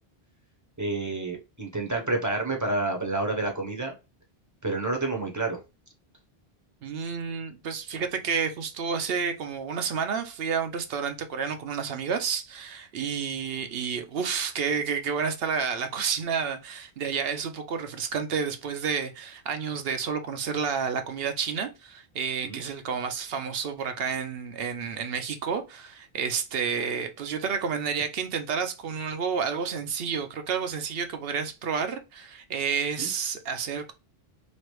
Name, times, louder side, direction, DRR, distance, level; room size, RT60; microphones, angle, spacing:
voice 1, 0.8-3.9 4.6-5.6 22.4-22.6 33.0-33.1, right 2 dB, 20° right, 0.7 m, -29 dB
voice 2, 6.8-33.9, right 6 dB, 70° right, 0.8 m, -30 dB
3.1 x 2.5 x 3.0 m
omnidirectional pair, 1.0 m